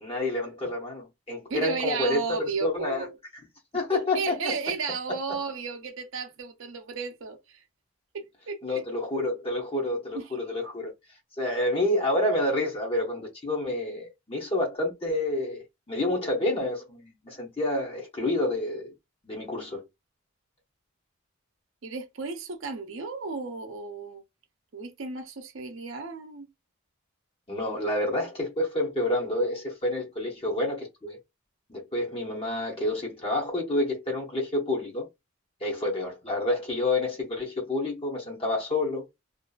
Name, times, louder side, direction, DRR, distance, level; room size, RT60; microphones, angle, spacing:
voice 1, 0.0-3.1 3.7-4.5 8.6-10.9 11.4-18.9 19.2-19.9 27.5-31.2 31.7-35.1 35.6-39.1, left 1 dB, 25° left, 0.6 m, -28 dB
voice 2, 1.5-3.1 3.9-7.6 8.1-8.8 10.1-10.2 21.8-24.2 24.7-26.5, right 5 dB, 70° right, 0.5 m, -34 dB
2.5 x 2.4 x 2.3 m
head